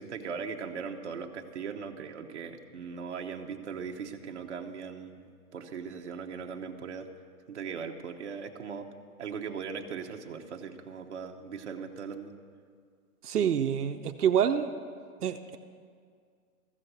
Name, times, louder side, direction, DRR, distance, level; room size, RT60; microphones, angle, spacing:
voice 1, 0.0-7.1 7.5-8.9 9.2-12.3, right 6 dB, 50° right, 3 dB, 1.0 m, -39 dB
voice 2, 13.2-14.7 15.2-15.6, right 8 dB, 80° right, 7 dB, 0.8 m, -27 dB
14.5 x 7.5 x 8.0 m, 2.1 s
hypercardioid pair, 170°, 45 cm